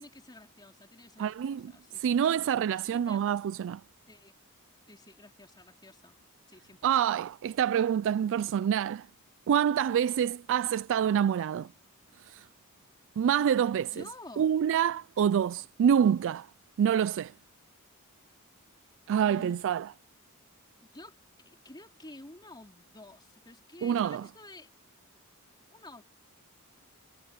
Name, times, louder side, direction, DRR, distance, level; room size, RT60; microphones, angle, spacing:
voice 1, 0.0-3.2 4.1-4.4 4.9-6.2 6.4-7.1 13.9-14.5 19.2-19.6 20.9-21.2 21.5-24.7 25.7-26.0, left 2 dB, 20° left, 3.9 m, -51 dB
voice 2, 1.2-1.7 2.0-3.8 6.8-9.1 9.5-11.7 12.3-12.4 13.2-13.9 14.4-16.5 16.8-17.3 19.1-19.9 23.8-24.2, right 8 dB, 60° right, 0.3 m, -26 dB
head